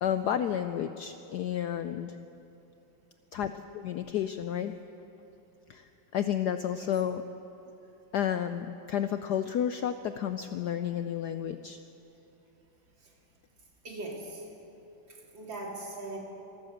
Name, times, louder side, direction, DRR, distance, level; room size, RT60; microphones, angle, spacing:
voice 1, 0.0-2.2 3.3-4.7 5.7-7.2 8.1-11.8, left 9 dB, 75° left, 10 dB, 0.9 m, -31 dB
voice 2, 13.8-14.5 15.1-16.2, right 2 dB, 60° right, -1 dB, 3.5 m, -40 dB
26.0 x 13.0 x 7.9 m, 3.0 s
omnidirectional pair, 2.3 m